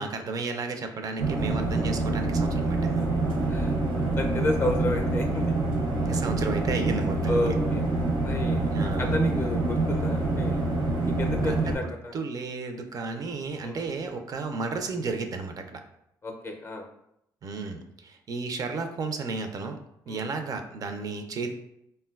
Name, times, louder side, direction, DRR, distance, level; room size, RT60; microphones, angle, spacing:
voice 1, 0.0-3.0 6.1-7.4 8.7-9.1 11.4-15.8 17.4-19.8 20.1-21.5, right 4 dB, 45° right, 6 dB, 0.4 m, -33 dB
sound 1, 1.2-11.8, right 2 dB, 65° right, 0.8 m, -26 dB
voice 2, 4.2-5.6 7.3-7.9 8.2-8.7 9.0-10.6 11.2-12.1 13.6-13.8 16.2-16.9 20.1-20.3, left 2 dB, 30° left, 3 dB, 0.4 m, -31 dB
3.7 x 2.2 x 2.3 m, 0.78 s
cardioid pair, 85°, 8 cm